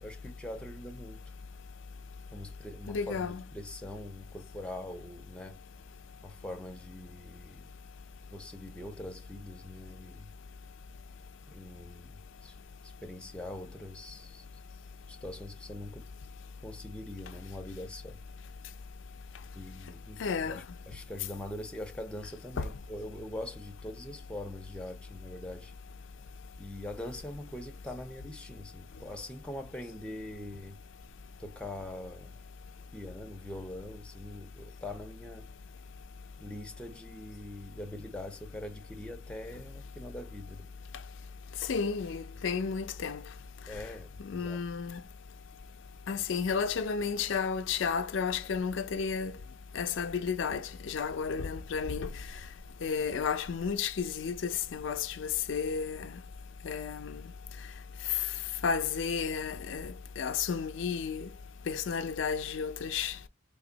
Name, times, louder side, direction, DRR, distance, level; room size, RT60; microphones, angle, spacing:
voice 1, 0.0-1.3 2.3-5.6 6.2-7.7 8.3-10.3 11.5-12.6 12.8-14.4 15.1-16.1 16.6-18.2 19.5-25.7 26.6-30.8 31.4-32.4 32.9-35.5 36.4-40.7 43.7-44.7, left 1 dB, 5° left, 0.6 m, -43 dB
voice 2, 2.9-3.4 20.2-20.6 22.6-22.7 41.7-43.2 44.2-45.0 46.1-49.3 49.8-52.1 52.8-56.0 56.6-57.0 58.6-61.3 61.7-63.1, left 6 dB, 65° left, 0.4 m, -32 dB
3.4 x 2.2 x 3.9 m
head